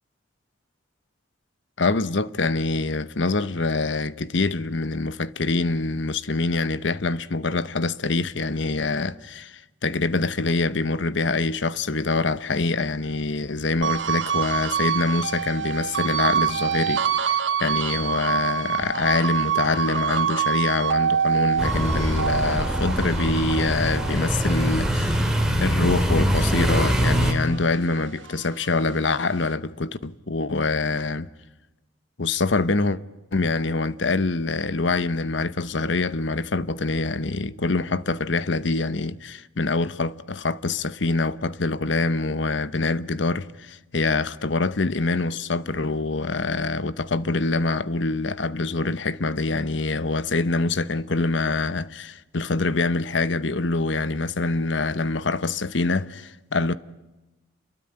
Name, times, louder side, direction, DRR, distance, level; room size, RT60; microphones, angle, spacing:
voice 1, 1.8-25.3 25.6-31.3 32.2-33.0 33.3-56.7, left 3 dB, 65° left, 0.9 m, -25 dB
sound 1, 13.8-26.4 26.8-28.5, right 8 dB, 65° right, 1.6 m, -26 dB
sound 2, 21.6-27.3, equal, 5° right, 2.8 m, -23 dB
29.0 x 22.5 x 8.9 m
head